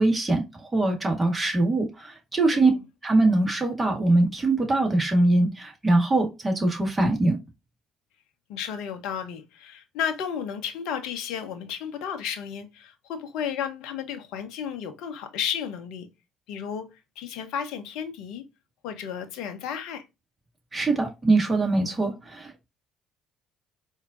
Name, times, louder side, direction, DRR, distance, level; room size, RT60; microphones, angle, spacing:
voice 1, 0.0-2.7 3.0-7.4 20.7-22.7, right 2 dB, 20° right, 1.8 m, -22 dB
voice 2, 8.5-16.1 16.5-16.9 17.2-18.4 18.8-20.0, left 8 dB, 70° left, 0.8 m, -33 dB
4.5 x 2.8 x 2.5 m
hypercardioid pair, 55°, 0 cm